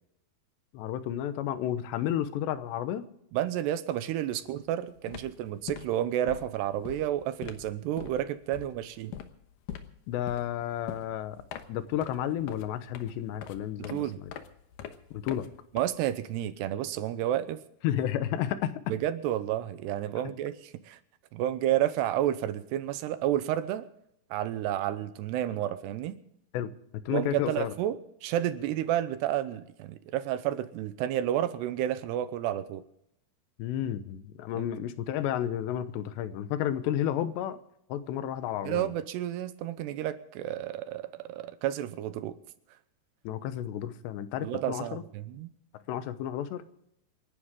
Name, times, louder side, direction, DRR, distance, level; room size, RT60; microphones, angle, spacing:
voice 1, 0.7-3.1 10.1-11.4 11.7-14.3 15.1-15.5 17.8-18.8 26.5-26.7 27.1-27.7 33.6-37.6 37.9-38.9 43.2-45.0 45.7-46.6, left 11 dB, 90° left, 12 dB, 3.2 m, -32 dB
voice 2, 3.3-9.1 13.8-14.2 15.7-17.6 18.9-21.0 21.3-23.9 24.3-26.2 27.1-32.8 34.5-34.7 38.6-42.4 44.4-45.5, right 12 dB, 85° right, 12 dB, 3.0 m, -31 dB
sound 1, 4.5-4.7 4.9-16.4, left 9 dB, 70° left, 2.3 m, -44 dB
28.0 x 11.5 x 3.7 m, 0.77 s
omnidirectional pair, 4.8 m